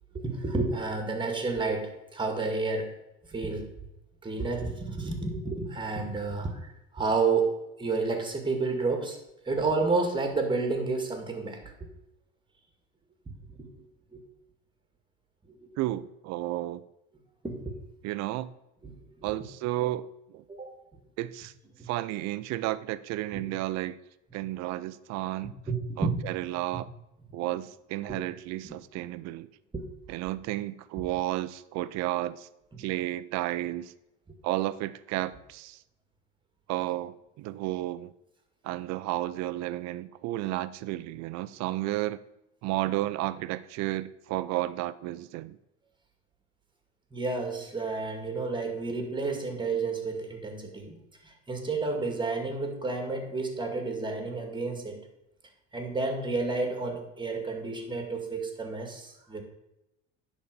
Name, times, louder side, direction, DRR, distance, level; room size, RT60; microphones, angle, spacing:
voice 1, 0.1-2.9 3.3-3.7 4.2-9.2 9.4-11.9 13.5-13.7 14.1-14.2 15.6-15.7 17.4-17.8 18.8-19.4 20.5-20.7 21.8-21.9 23.3-23.4 25.7-26.2 28.1-28.2 28.6-28.7 29.7-29.8 32.7-32.8 47.1-51.0 51.2-55.0 55.7-59.4, right 3 dB, 15° right, 2.0 m, -31 dB
voice 2, 15.8-16.8 18.0-18.5 19.2-20.4 21.2-21.5 21.8-24.0 24.3-25.5 26.0-26.9 27.3-29.5 30.1-32.5 32.8-33.9 34.4-35.8 36.7-38.1 38.6-42.2 42.6-45.6, right 16 dB, 60° right, 0.6 m, -32 dB
10.0 x 4.2 x 6.7 m
supercardioid pair, 110°, 31 cm